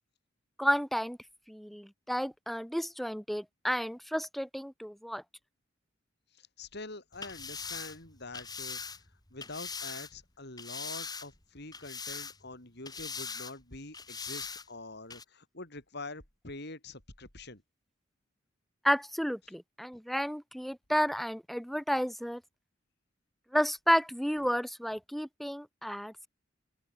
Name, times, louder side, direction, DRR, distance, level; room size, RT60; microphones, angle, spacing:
voice 1, 0.6-1.2 1.5-5.2 18.8-22.4 23.5-26.3, equal, ahead, 0.8 m, -31 dB
voice 2, 6.3-8.8 9.3-17.6, left 2 dB, 60° left, 6.5 m, -45 dB
sound 1, 7.1-10.1 10.6-11.4 11.7-12.5 12.8-13.5 13.9-14.6 15.1-15.2, left 5 dB, 20° left, 4.2 m, -41 dB
open air
head